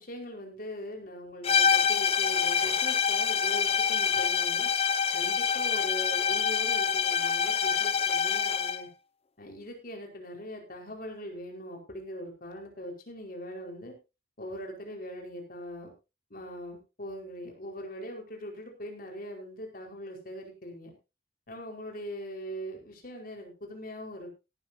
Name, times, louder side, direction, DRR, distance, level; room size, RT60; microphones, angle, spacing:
voice 1, 0.0-4.7 5.1-8.9 9.4-13.9 14.4-15.9 16.3-20.9 21.5-24.4, equal, 50° left, 2 dB, 4.7 m, -41 dB
sound 1, 1.4-8.9, left 7 dB, 35° left, 0.7 m, -26 dB
17.5 x 12.0 x 2.8 m, 0.28 s
head